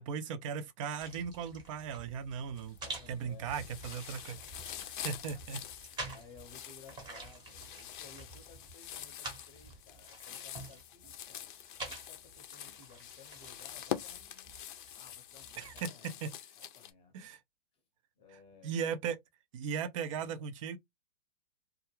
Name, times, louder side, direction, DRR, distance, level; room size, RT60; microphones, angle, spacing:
voice 1, 0.0-2.8 3.1-4.4 5.0-5.6 15.6-15.9 16.2-16.3 17.1-17.4 18.6-19.2 19.5-20.8, right 7 dB, 35° right, 0.4 m, -37 dB
sound 1, 1.0-15.8, right 2 dB, 15° right, 0.8 m, -49 dB
sound 2, 2.6-3.1 3.4-16.9, left 11 dB, 55° left, 0.5 m, -45 dB
voice 2, 2.8-3.7 4.7-5.2 5.8-11.5 11.9-14.6 14.9-16.3 16.5-17.1 18.2-18.8 20.1-20.5, left 5 dB, 20° left, 0.8 m, -58 dB
2.3 x 2.1 x 2.9 m
hypercardioid pair, 135°, 31 cm